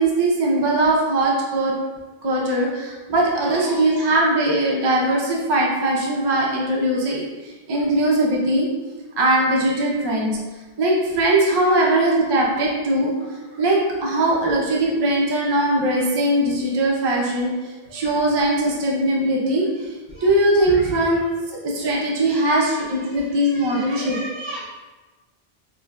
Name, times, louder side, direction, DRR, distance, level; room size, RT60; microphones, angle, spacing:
voice 1, 0.0-1.7 2.2-8.7 9.2-10.4 10.8-13.1 13.6-19.9 20.2-21.2 21.6-24.2, right 1 dB, 35° right, -4 dB, 0.4 m, -20 dB
voice 2, 23.9-24.6, right 1 dB, 75° right, -8 dB, 1.1 m, -33 dB
4.5 x 2.4 x 2.2 m, 1.2 s
omnidirectional pair, 1.1 m